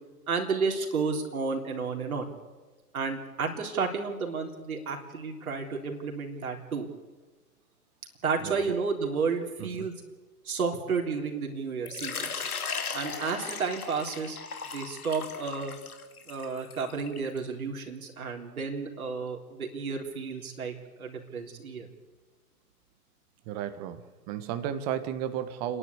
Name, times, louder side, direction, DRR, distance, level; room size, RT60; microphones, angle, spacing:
voice 1, 0.3-2.3 2.9-6.9 8.2-9.9 10.4-12.4 12.9-14.4 14.7-15.7 16.3-21.9, right 5 dB, 60° right, 2 dB, 3.7 m, -32 dB
Water / Liquid, 11.9-17.4, left 5 dB, 65° left, 2.6 m, -37 dB
voice 2, 23.5-25.8, right 10 dB, 25° right, 10 dB, 1.4 m, -33 dB
29.5 x 11.0 x 8.3 m, 1.3 s
figure-of-eight pair, 125°, 47 cm